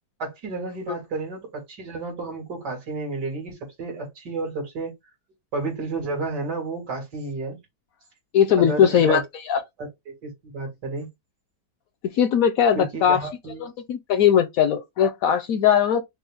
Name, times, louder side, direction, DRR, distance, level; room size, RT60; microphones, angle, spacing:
voice 1, 0.2-4.9 5.5-7.6 8.6-9.2 9.8-11.1 12.7-13.7, right 3 dB, 80° right, 2.8 m, -31 dB
voice 2, 8.3-9.6 12.1-13.3 13.6-16.0, left 8 dB, 70° left, 0.9 m, -20 dB
5.4 x 2.3 x 3.4 m
omnidirectional pair, 1.8 m